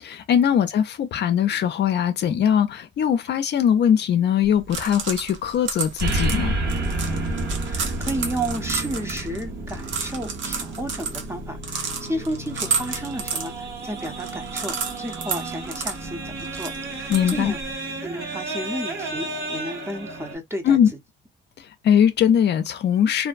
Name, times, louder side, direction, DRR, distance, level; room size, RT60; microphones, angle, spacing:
voice 1, 0.0-6.5 17.1-17.5 20.6-20.9 21.6-23.3, left 9 dB, 60° left, 0.5 m, -21 dB
sound 1, 4.4-17.7, right 5 dB, 70° right, 0.7 m, -32 dB
sound 2, 6.0-20.3, right 2 dB, 55° right, 1.3 m, -31 dB
voice 2, 7.6-17.6 17.9-20.8, right 1 dB, 15° right, 0.7 m, -32 dB
2.6 x 2.1 x 2.4 m
cardioid pair, 90°, 20 cm